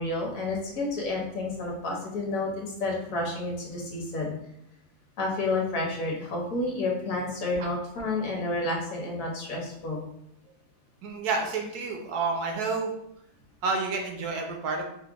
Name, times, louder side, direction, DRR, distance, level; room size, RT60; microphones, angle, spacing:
voice 1, 0.0-4.3 5.2-10.0, left 2 dB, 60° left, -1 dB, 1.2 m, -30 dB
voice 2, 11.0-12.9 13.6-14.8, right 4 dB, 75° right, 2 dB, 1.3 m, -29 dB
4.9 x 2.1 x 3.4 m, 0.77 s
omnidirectional pair, 1.7 m